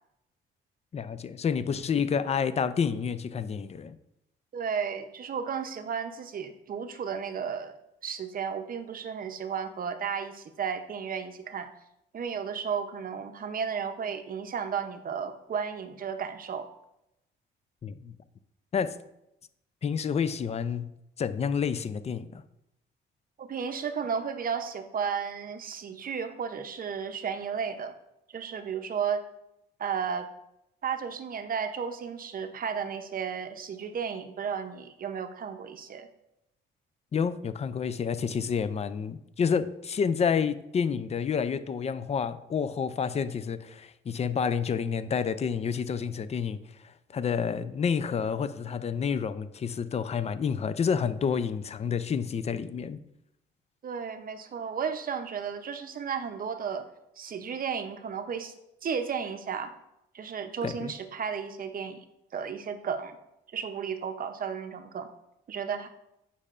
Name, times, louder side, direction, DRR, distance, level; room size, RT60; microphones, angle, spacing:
voice 1, 0.9-4.0 17.8-18.2 18.7-18.9 19.8-20.9 21.2-22.4 37.1-46.6 46.8-53.0 60.6-60.9, left 6 dB, 35° left, 0.4 m, -29 dB
voice 2, 4.5-7.8 8.0-11.7 12.1-16.7 23.4-27.9 28.3-29.2 29.8-30.3 30.8-36.1 53.8-56.9 57.2-58.5 58.8-59.7 60.1-62.0 62.3-63.2 63.5-65.1 65.5-65.9, right 6 dB, 45° right, 0.7 m, -33 dB
8.4 x 5.4 x 2.5 m
cardioid pair, 90°, 20 cm